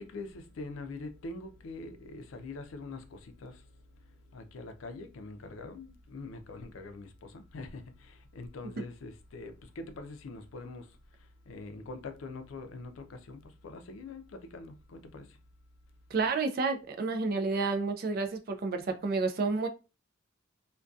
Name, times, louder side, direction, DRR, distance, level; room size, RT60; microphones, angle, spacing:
voice 1, 0.0-3.7 4.3-15.4, left 3 dB, 85° left, 0.4 m, -44 dB
voice 2, 16.1-19.7, right 4 dB, 45° right, 0.3 m, -30 dB
2.6 x 2.2 x 2.3 m
head